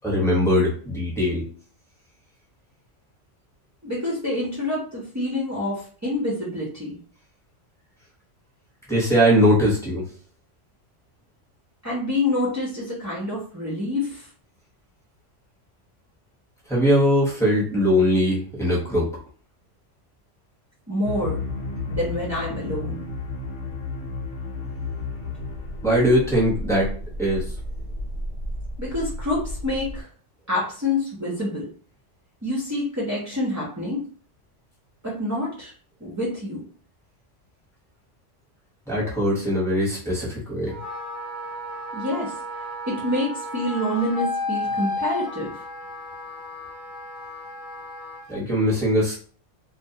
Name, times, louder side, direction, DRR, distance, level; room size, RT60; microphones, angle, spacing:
voice 1, 0.0-1.4 8.9-10.1 16.7-19.1 25.8-26.9 27.2-27.4 38.9-40.8 48.3-49.1, equal, 5° left, -5 dB, 0.7 m, -21 dB
voice 2, 3.8-7.0 11.8-14.3 20.9-21.4 21.9-23.0 28.8-30.1 30.5-31.7 32.4-34.1 35.0-35.7 36.0-36.6 41.9-42.4 42.9-45.6, left 1 dB, 25° right, -6 dB, 0.4 m, -27 dB
sound 1, 21.0-30.0, left 2 dB, 80° left, 1.0 m, -32 dB
Wind instrument woodwind instrument, 40.7-48.4, left 1 dB, 50° left, 0.7 m, -33 dB
2.2 x 2.1 x 2.7 m, 0.44 s
omnidirectional pair, 1.2 m